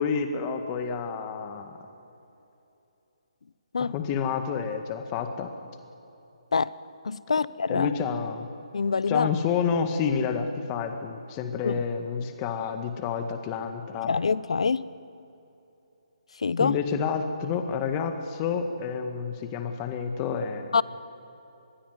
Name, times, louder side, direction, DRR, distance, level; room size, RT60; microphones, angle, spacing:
voice 1, 0.0-1.8 3.8-5.5 7.7-8.5 9.1-14.1 16.6-20.7, left 6 dB, 25° left, 1.9 m, -29 dB
voice 2, 7.0-7.9 8.7-9.3 11.6-11.8 14.0-14.9 16.4-16.8 20.7-20.8, left 5 dB, 70° left, 0.8 m, -25 dB
25.0 x 21.0 x 9.7 m
hypercardioid pair, 155°, 3 cm